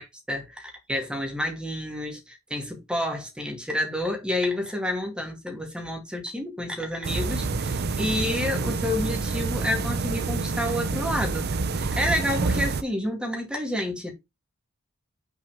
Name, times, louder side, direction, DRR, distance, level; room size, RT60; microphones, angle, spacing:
voice 1, 0.0-11.5 11.7-14.1, left 1 dB, 5° right, 2.4 m, -29 dB
sound 1, 7.0-12.8, right 3 dB, 50° right, 0.6 m, -27 dB
6.1 x 4.7 x 5.0 m
head